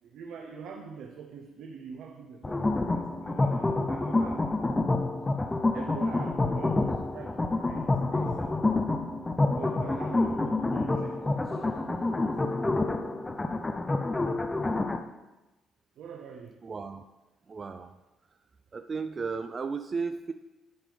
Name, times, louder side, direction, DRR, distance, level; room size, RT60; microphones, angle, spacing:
voice 1, 0.0-4.5 5.4-8.6 9.5-12.3 16.0-16.6, right 6 dB, 75° right, 2 dB, 0.7 m, -45 dB
sound 1, 2.4-15.0, left 2 dB, 20° left, 0.5 m, -28 dB
voice 2, 16.6-17.0 17.5-18.0 18.7-20.3, right 5 dB, 35° right, 8 dB, 0.3 m, -34 dB
11.0 x 5.1 x 3.4 m, 1.1 s
cardioid pair, 95°, 0 cm